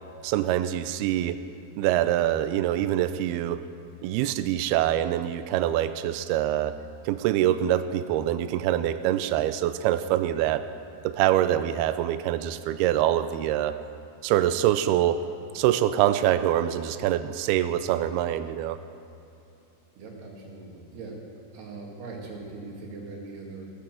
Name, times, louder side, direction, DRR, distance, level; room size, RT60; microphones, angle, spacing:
voice 1, 0.2-1.4 1.8-3.7 4.0-6.8 7.1-10.7 11.0-13.8 14.2-15.2 15.5-18.8, right 12 dB, 85° right, 11 dB, 2.3 m, -25 dB
voice 2, 20.0-21.2 21.5-23.7, right 3 dB, 70° right, -1 dB, 4.2 m, -40 dB
16.5 x 10.0 x 7.6 m, 2.9 s
omnidirectional pair, 5.0 m